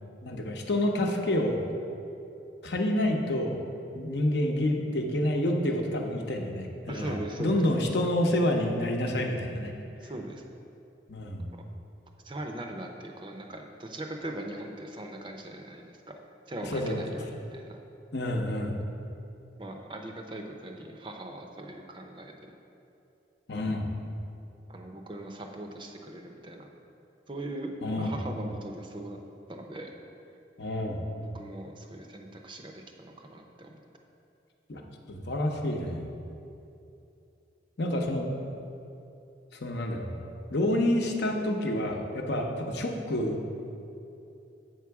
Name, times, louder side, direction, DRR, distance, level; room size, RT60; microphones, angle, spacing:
voice 1, 0.2-1.6 2.6-3.6 3.9-9.7 11.1-11.5 16.7-17.0 18.1-18.8 23.5-23.9 27.8-28.2 30.6-31.0 34.7-34.8 35.1-36.1 37.8-38.3 39.6-40.2 40.5-43.5, left 1 dB, 65° left, 2 dB, 0.8 m, -28 dB
voice 2, 6.9-7.6 10.0-10.4 12.2-16.1 16.5-17.8 19.6-22.3 24.7-26.7 27.3-27.7 28.0-29.2 29.5-29.9 31.1-33.8, right 1 dB, 25° right, 3 dB, 0.5 m, -40 dB
7.7 x 6.1 x 4.7 m, 2.8 s
head